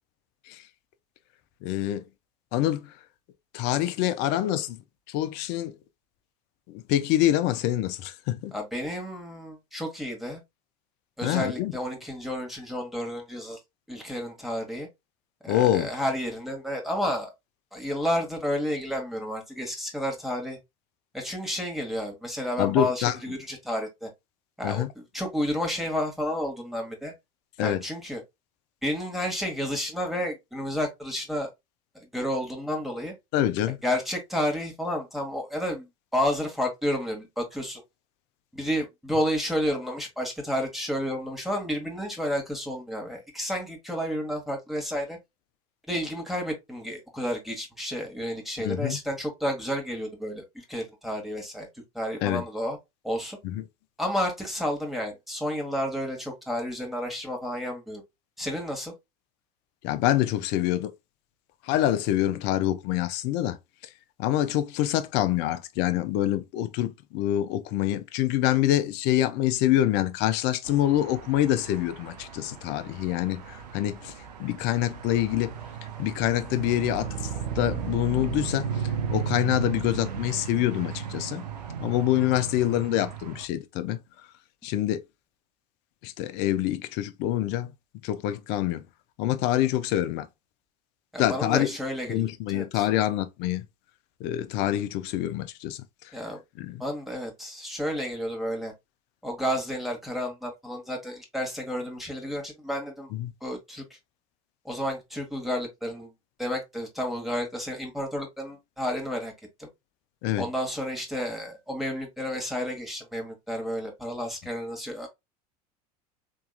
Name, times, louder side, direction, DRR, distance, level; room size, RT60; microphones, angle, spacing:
voice 1, 1.6-2.0 2.5-2.9 3.5-4.8 5.1-5.7 6.7-8.6 11.2-11.7 15.5-15.9 22.6-23.2 24.6-24.9 27.6-27.8 33.3-33.8 48.6-49.0 52.2-52.4 53.4-53.6 59.8-60.9 61.6-63.6 64.2-74.1 74.4-75.5 76.0-77.3 77.6-78.8 79.1-81.4 81.8-84.0 84.6-85.0 86.0-87.7 88.0-88.8 89.2-90.3 91.2-91.7 92.1-93.6 94.2-95.8 96.6-96.8 103.1-103.3 110.2-110.5, left 13 dB, 60° left, 0.6 m, -26 dB
voice 2, 8.5-10.4 11.2-13.6 13.9-14.9 15.4-17.3 17.7-20.6 21.1-24.1 24.6-27.1 27.6-28.2 28.8-31.5 31.9-33.1 33.8-35.9 36.1-37.8 38.5-45.2 45.9-51.7 51.9-52.8 53.0-53.4 54.0-58.0 58.4-58.9 91.1-92.9 96.1-96.4 96.8-98.7 99.2-103.1 103.4-103.8 104.6-106.1 106.4-109.3 109.6-109.7 110.4-115.1, equal, ahead, 1.5 m, -31 dB
sound 1, 70.6-83.4, right 7 dB, 90° right, 0.6 m, -35 dB
3.6 x 2.9 x 2.3 m
hypercardioid pair, 80°, 20 cm